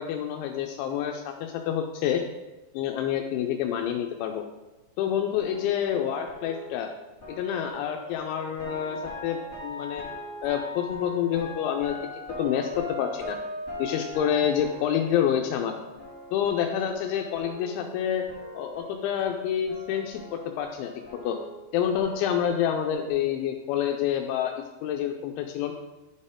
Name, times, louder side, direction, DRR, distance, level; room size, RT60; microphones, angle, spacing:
voice 1, 0.0-2.2 2.7-4.4 5.0-6.9 7.4-10.0 10.4-11.9 12.4-13.4 13.8-15.8 16.3-18.2 18.5-20.9 21.2-21.4 21.7-25.7, left 9 dB, 85° left, 4 dB, 2.9 m, -28 dB
sound 1, 5.3-18.0 18.3-23.1, left 1 dB, 35° left, 1.1 m, -41 dB
11.0 x 4.3 x 3.7 m, 1.1 s
omnidirectional pair, 5.3 m